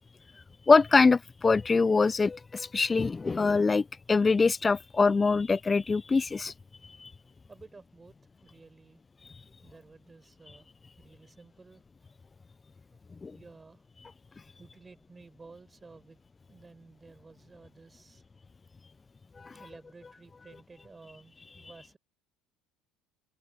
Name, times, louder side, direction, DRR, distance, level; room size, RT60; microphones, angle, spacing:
voice 1, 0.7-6.5 7.0-7.1 13.2-13.3 19.4-19.5, left 4 dB, 25° left, 0.4 m, -24 dB
voice 2, 7.5-8.2 8.4-9.0 9.6-10.7 11.0-11.8 12.9-13.0 13.3-13.9 14.6-16.2 16.5-18.2 19.6-22.0, right 4 dB, 20° right, 6.0 m, -53 dB
hypercardioid pair, 65°, 0 cm